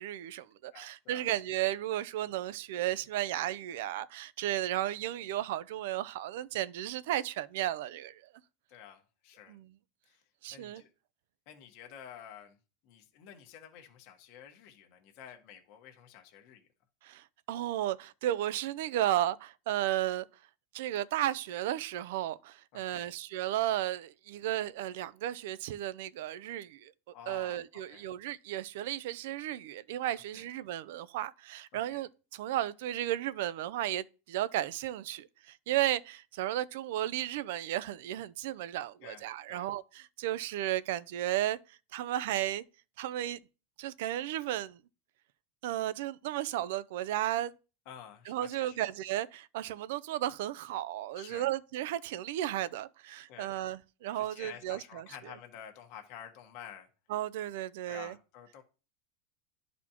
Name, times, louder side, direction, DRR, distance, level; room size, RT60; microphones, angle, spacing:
voice 1, 0.0-8.2 9.5-9.7 10.4-10.8 17.0-20.3 20.7-26.9 27.3-42.6 43.0-43.4 43.8-44.8 45.6-47.5 48.3-55.1 57.1-58.2, right 13 dB, 70° right, 0.4 m, -34 dB
voice 2, 0.7-1.3 8.7-9.6 10.1-10.2 10.5-10.9 11.5-12.5 12.8-16.7 22.7-23.1 27.1-28.1 30.3-30.5 31.7-32.0 39.0-39.2 39.5-39.7 47.9-48.8 51.2-51.5 53.3-53.5 54.1-56.9 57.9-58.6, left 9 dB, 50° left, 1.2 m, -50 dB
11.5 x 4.1 x 2.9 m
supercardioid pair, 155°, 0 cm